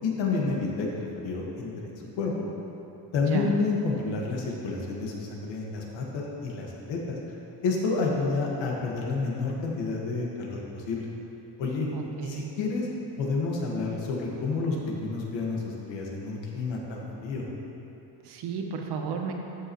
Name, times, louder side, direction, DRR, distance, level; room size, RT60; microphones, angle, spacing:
voice 1, 0.0-2.3 3.1-7.2 7.6-11.1 11.6-11.9 12.2-12.9 13.1-17.5, left 4 dB, 80° left, -2 dB, 1.8 m, -29 dB
voice 2, 11.9-12.4 18.2-19.3, right 6 dB, 60° right, 3 dB, 1.1 m, -33 dB
13.5 x 7.1 x 3.1 m, 2.9 s
cardioid pair, 150°, 45 cm